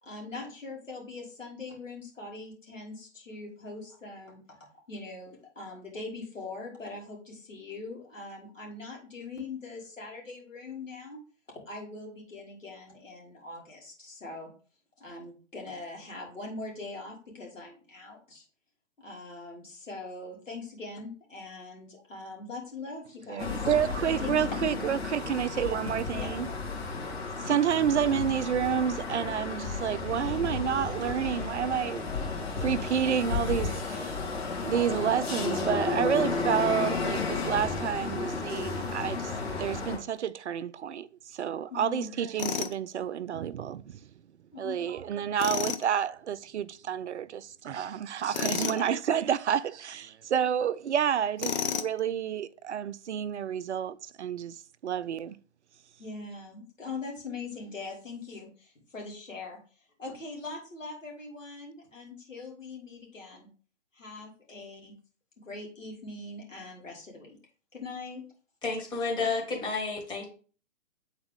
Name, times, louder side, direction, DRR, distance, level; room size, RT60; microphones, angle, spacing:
voice 1, 0.0-4.4 4.9-11.2 11.7-14.5 15.0-18.4 19.0-23.7 24.2-24.6 26.1-26.3 27.4-27.6 41.7-42.1 44.5-44.8 56.0-59.6 60.0-63.5 63.9-64.9 65.4-67.4 67.7-68.2, left 3 dB, 80° left, 2.8 m, -42 dB
voice 2, 23.3-26.5 27.0-27.1 27.4-32.2 32.6-34.1 34.7-39.3 39.6-44.0 44.6-55.4, right 8 dB, 65° right, 0.5 m, -29 dB
sound 1, 23.4-40.0, left 4 dB, 55° left, 2.2 m, -33 dB
Tools, 42.4-42.8 45.4-45.8 48.3-48.8 51.4-52.0, left 7 dB, 35° left, 0.5 m, -31 dB
voice 3, 68.6-70.2, left 4 dB, 10° left, 1.6 m, -31 dB
7.9 x 4.0 x 3.4 m
figure-of-eight pair, 125°, 38 cm